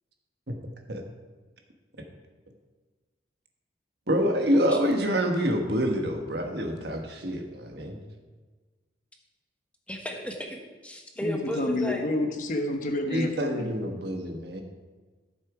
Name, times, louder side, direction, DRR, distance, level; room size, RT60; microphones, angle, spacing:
voice 1, 4.1-8.0 13.1-14.6, equal, 55° right, 3 dB, 1.4 m, -27 dB
voice 2, 9.9-12.1, equal, 5° left, 2 dB, 1.2 m, -34 dB
voice 3, 11.2-13.7, left 1 dB, 40° left, 4 dB, 1.1 m, -29 dB
13.0 x 7.5 x 5.0 m, 1.3 s
head